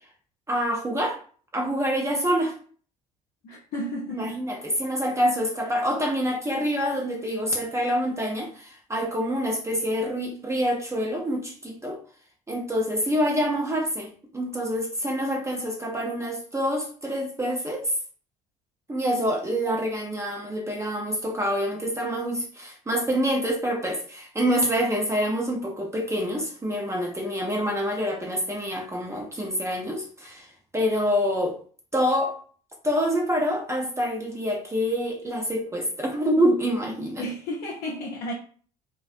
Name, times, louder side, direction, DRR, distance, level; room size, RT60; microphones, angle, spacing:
voice 1, 0.5-1.2 1.5-2.6 4.1-12.0 12.5-17.9 18.9-31.6 31.9-32.4 32.8-37.3, equal, 15° right, 0.5 m, -26 dB
voice 2, 3.4-4.4 37.2-38.3, equal, 55° left, 0.6 m, -32 dB
2.4 x 2.2 x 2.4 m
hypercardioid pair, 60°, 19 cm